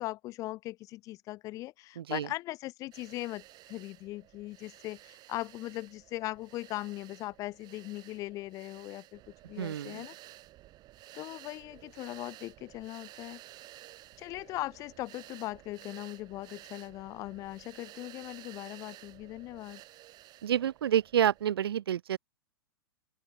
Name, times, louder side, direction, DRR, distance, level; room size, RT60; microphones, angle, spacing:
voice 1, 0.0-10.1 11.1-13.4 14.2-19.8, left 17 dB, 25° left, 0.3 m, -39 dB
voice 2, 2.0-2.3 9.6-10.1 20.4-22.2, right 10 dB, 70° right, 0.7 m, -29 dB
sound 1, 2.9-21.4, right 16 dB, 30° right, 2.4 m, -53 dB
open air
hypercardioid pair, 115°, 13 cm